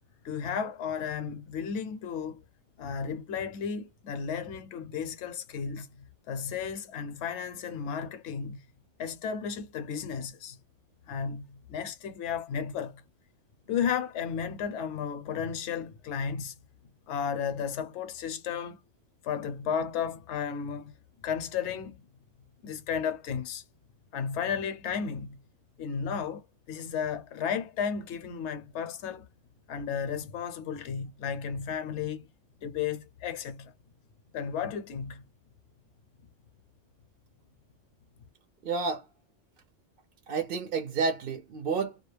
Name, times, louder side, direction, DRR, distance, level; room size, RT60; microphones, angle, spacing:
voice 1, 0.2-2.4 2.8-8.6 9.0-10.6 11.1-13.0 13.7-16.5 17.1-18.8 19.2-20.9 21.2-22.0 22.6-23.6 24.1-25.4 25.8-29.2 29.7-32.3 32.6-33.7 34.3-35.2, left 7 dB, 70° left, 0.9 m, -33 dB
voice 2, 38.6-39.0 40.3-42.0, right 4 dB, 60° right, 0.6 m, -30 dB
2.2 x 2.0 x 3.2 m
omnidirectional pair, 1.2 m